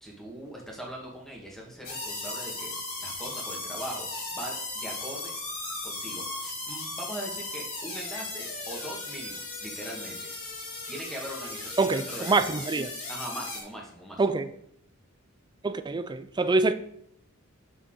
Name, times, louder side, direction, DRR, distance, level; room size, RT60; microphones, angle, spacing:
voice 1, 0.0-2.7 3.0-5.3 5.8-10.3 10.9-12.5 13.1-14.2 16.6-16.7, equal, ahead, 1.8 m, -41 dB
Instrumento ÊÊÊÊ, 1.8-13.6, left 2 dB, 75° left, 3.1 m, -37 dB
voice 2, 11.8-12.9 14.2-14.5 15.6-16.7, right 3 dB, 20° right, 0.4 m, -25 dB
6.8 x 6.4 x 3.8 m
head